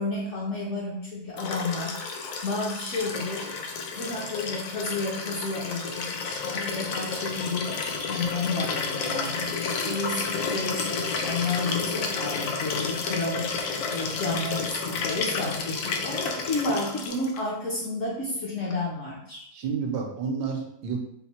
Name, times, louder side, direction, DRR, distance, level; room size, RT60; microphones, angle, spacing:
voice 1, 0.0-3.5 3.9-9.5 9.8-19.5, left 2 dB, 55° left, -5 dB, 0.9 m, -31 dB
Liquid, 1.4-17.4 18.7-18.8, left 4 dB, 90° left, 1.3 m, -31 dB
voice 2, 14.4-14.9 15.5-15.7 19.5-21.0, right 5 dB, 75° right, 1 dB, 1.3 m, -32 dB
4.4 x 2.1 x 4.1 m, 0.77 s
omnidirectional pair, 2.0 m